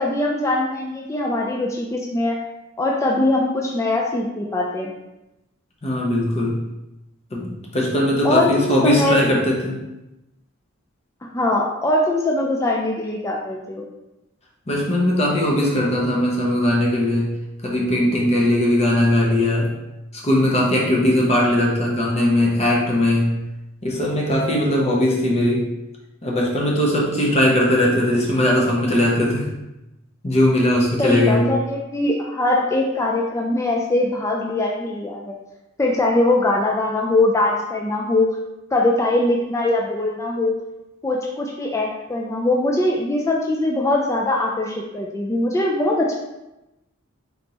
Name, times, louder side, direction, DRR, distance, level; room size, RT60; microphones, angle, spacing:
voice 1, 0.0-2.4 2.8-4.9 8.2-9.2 11.2-13.8 31.0-35.3 35.8-38.3 38.7-40.6 41.0-46.1, left 2 dB, 15° left, -1 dB, 0.3 m, -21 dB
voice 2, 5.8-6.6 7.3-9.8 14.7-17.3 17.6-19.7 20.2-23.3 23.8-25.7 26.2-29.5 30.2-31.4, left 1 dB, 30° left, -3 dB, 0.9 m, -19 dB
4.0 x 3.5 x 2.9 m, 0.96 s
head